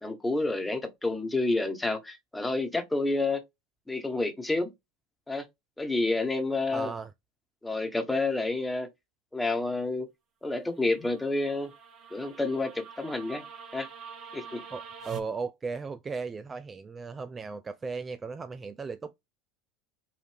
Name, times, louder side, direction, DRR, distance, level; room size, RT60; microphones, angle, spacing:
voice 1, 0.0-3.4 3.9-4.7 5.3-5.5 5.8-6.9 7.6-8.9 9.3-10.1 10.4-11.7 12.1-13.4 13.7-13.9 14.3-14.6, left 2 dB, 10° left, 1.2 m, -29 dB
voice 2, 6.7-7.1 14.7-19.1, right 4 dB, 25° right, 0.4 m, -36 dB
sound 1, 10.8-15.2, right 6 dB, 45° right, 1.2 m, -46 dB
4.7 x 2.6 x 3.3 m
figure-of-eight pair, 75°, 0 cm